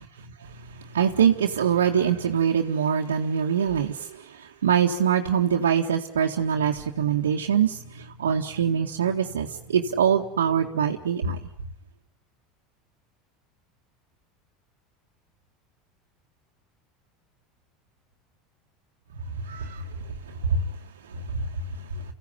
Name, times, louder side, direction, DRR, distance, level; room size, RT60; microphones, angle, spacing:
voice 1, 0.6-11.4 19.4-19.9 20.5-20.8 21.2-21.7 21.9-22.0, right 7 dB, 85° right, -1 dB, 1.8 m, -24 dB
29.5 x 16.5 x 9.8 m, 0.74 s
hypercardioid pair, 85°, 0 cm